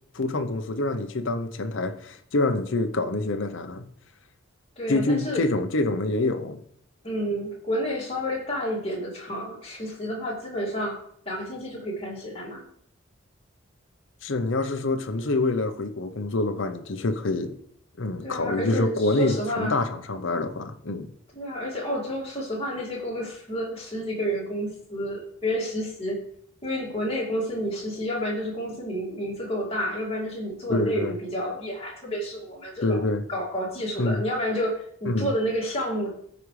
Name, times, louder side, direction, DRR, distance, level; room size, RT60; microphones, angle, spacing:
voice 1, 0.1-3.9 4.9-6.6 14.2-17.5 18.0-21.1 30.7-31.1 32.8-33.2 34.0-34.2 35.1-35.3, left 2 dB, 60° left, 0.7 m, -26 dB
voice 2, 4.8-5.4 7.0-11.0 11.3-12.7 18.2-19.7 21.3-26.2 26.6-33.0 33.3-36.1, equal, 25° left, 2.3 m, -30 dB
14.5 x 5.0 x 3.2 m
head